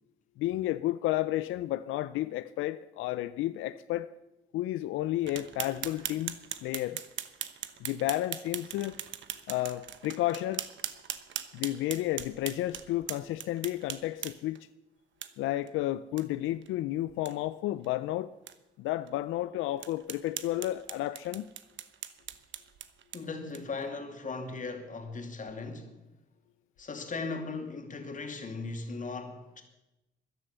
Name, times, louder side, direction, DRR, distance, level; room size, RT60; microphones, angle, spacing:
voice 1, 0.4-4.1 4.5-7.0 7.8-9.0 9.5-10.7 11.5-14.6 15.4-18.3 18.8-21.5, left 15 dB, 90° left, 0.5 m, -32 dB
sound 1, 5.3-14.6 15.2-15.3 15.7-15.8 16.2-16.3 16.6-16.7 17.1-17.3 17.8-17.9 18.5-18.6 19.1-19.2 19.8-23.8, right 10 dB, 70° right, 1.0 m, -40 dB
voice 2, 23.1-26.0 26.8-29.6, left 3 dB, 40° left, 2.7 m, -38 dB
13.5 x 11.0 x 6.8 m
cardioid pair, 90°, 20 cm